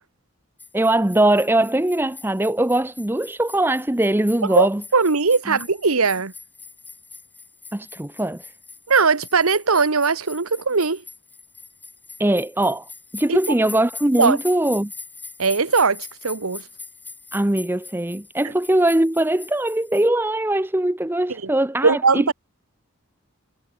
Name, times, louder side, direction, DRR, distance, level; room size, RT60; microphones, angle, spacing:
sound 1, 0.6-20.1, left 4 dB, 10° left, 2.4 m, -42 dB
voice 1, 0.7-4.8 5.5-5.6 7.7-8.5 12.2-12.9 13.1-14.9 17.3-22.3, right 1 dB, 10° right, 0.6 m, -21 dB
voice 2, 4.9-6.3 8.9-11.0 13.3-13.4 14.2-14.4 15.4-16.6 21.3-21.5 21.8-22.3, right 4 dB, 80° right, 1.3 m, -19 dB
head